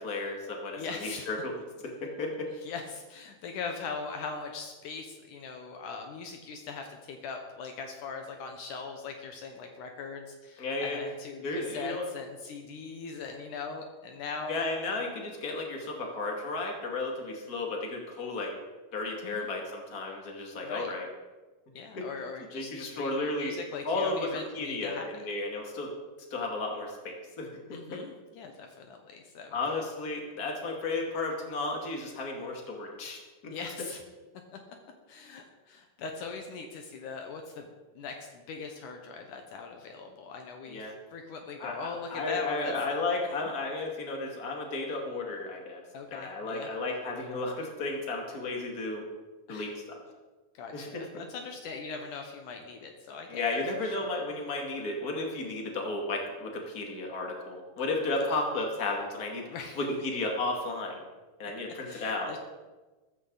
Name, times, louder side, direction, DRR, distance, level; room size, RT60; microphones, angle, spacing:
voice 1, 0.0-1.6 2.0-2.5 10.6-11.0 11.4-12.0 14.5-18.5 18.9-21.1 22.0-22.1 22.5-23.6 23.8-25.9 26.3-28.0 29.5-33.5 40.7-40.9 41.6-45.8 46.1-49.0 49.5-50.0 50.7-51.0 53.3-59.4 59.8-60.9 61.4-62.3, left 2 dB, 30° left, 1 dB, 2.3 m, -33 dB
voice 2, 0.8-1.3 2.6-14.6 19.2-19.5 20.6-20.9 21.7-25.2 27.7-29.6 33.5-34.0 35.1-37.7 38.0-42.7 45.9-46.7 49.5-49.7 50.5-54.1 58.2-58.3 59.5-59.8 61.9-62.4, left 4 dB, 70° left, 4 dB, 2.5 m, -40 dB
14.5 x 14.0 x 4.0 m, 1.2 s
omnidirectional pair, 3.9 m